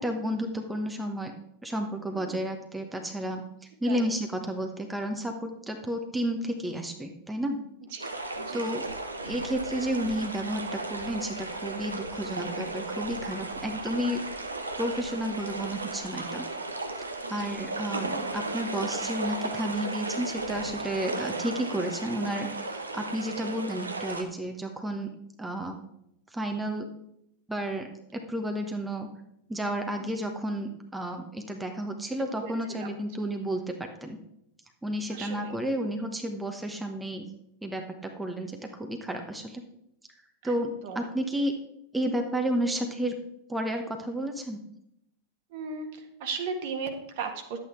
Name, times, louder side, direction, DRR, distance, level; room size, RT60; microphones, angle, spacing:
voice 1, 0.0-1.3 1.6-7.6 8.5-8.9 9.2-14.2 14.8-16.5 17.0-25.1 25.4-25.8 26.3-26.9 27.5-29.1 29.5-34.2 34.8-37.3 37.6-39.6 40.4-41.5 41.9-43.2 43.5-44.6, right 1 dB, 5° right, 4 dB, 1.1 m, -32 dB
sound 1, 8.0-24.2, right 2 dB, 80° right, 1.1 m, -35 dB
voice 2, 8.3-8.7 17.2-17.6 23.4-23.6 32.2-32.9 35.1-35.6 40.4-40.5 40.8-41.0 45.5-47.6, right 5 dB, 50° right, 5 dB, 1.6 m, -37 dB
11.5 x 8.3 x 4.6 m, 0.78 s
figure-of-eight pair, 90°, 0 cm